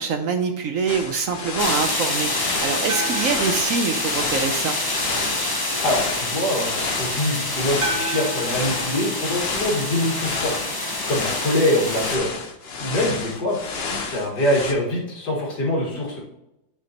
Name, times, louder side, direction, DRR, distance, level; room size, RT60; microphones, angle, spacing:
voice 1, 0.0-4.8, right 5 dB, 65° right, 6 dB, 1.0 m, -25 dB
sound 1, 0.9-14.7, left 4 dB, 45° left, 1.0 m, -31 dB
sound 2, 1.6-12.2, left 2 dB, 20° left, 0.7 m, -27 dB
sound 3, 2.9-5.1 7.8-10.2, right 2 dB, 30° right, 0.6 m, -33 dB
voice 2, 5.8-10.6 11.1-12.3 12.8-13.6 13.9-16.2, left 1 dB, 85° left, -3 dB, 2.5 m, -24 dB
9.5 x 5.1 x 2.9 m, 0.88 s
omnidirectional pair, 1.7 m